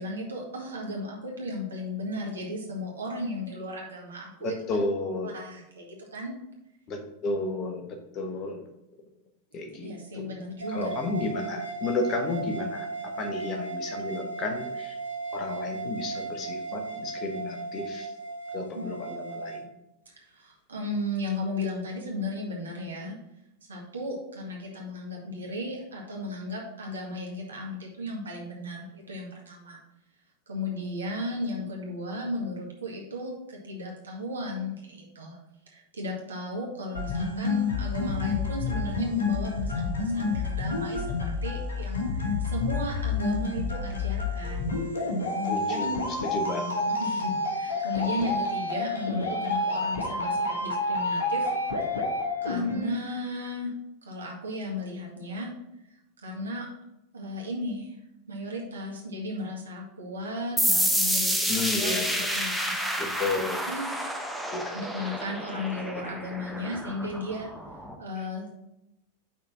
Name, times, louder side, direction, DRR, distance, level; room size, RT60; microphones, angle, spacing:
voice 1, 0.0-4.6 5.2-6.4 9.8-10.9 18.7-18.9 20.1-23.1 23.7-29.8 30.5-35.4 35.7-44.8 45.1-46.0 47.0-51.5 52.4-53.7 54.0-55.5 56.2-56.7 57.1-58.0 58.3-61.5 61.8-63.3 63.7-67.5 68.0-68.6, left 1 dB, 70° right, -2 dB, 1.9 m, -35 dB
voice 2, 4.4-5.4 6.9-8.6 9.5-10.3 10.7-15.0 15.3-18.1 18.5-19.7 45.5-46.0 46.2-46.9 61.5-62.2 63.0-63.6 64.5-64.7 68.2-68.3, left 3 dB, 35° left, 4 dB, 1.2 m, -32 dB
sound 1, 10.6-19.6, right 4 dB, 90° left, 1.6 m, -36 dB
sound 2, 36.9-53.0, left 3 dB, 70° left, 1.4 m, -29 dB
sound 3, 60.6-67.9, equal, ahead, 0.8 m, -29 dB
5.8 x 4.3 x 6.0 m, 0.87 s
figure-of-eight pair, 90°, 0 cm